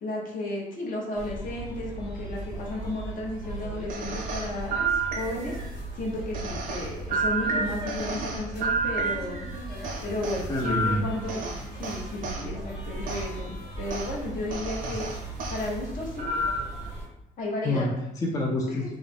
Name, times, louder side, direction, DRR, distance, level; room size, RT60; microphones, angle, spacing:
voice 1, 0.0-4.7 5.2-5.6 6.0-9.5 10.0-15.1 15.5-16.3 17.4-17.9 18.7-18.8, left 1 dB, 55° left, -3 dB, 0.8 m, -33 dB
sound 1, 1.1-17.1, right 1 dB, 75° left, 1.3 m, -37 dB
sound 2, 3.9-5.7 6.3-9.5 9.8-12.4 13.1-13.3 13.9-14.1 14.5-15.6 16.2-16.8, right 3 dB, 55° right, 0.6 m, -30 dB
voice 2, 10.5-11.0 14.9-15.0 17.6-19.0, left 1 dB, 20° left, -2 dB, 0.4 m, -28 dB
2.4 x 2.0 x 3.3 m, 0.87 s
cardioid pair, 110°, 17 cm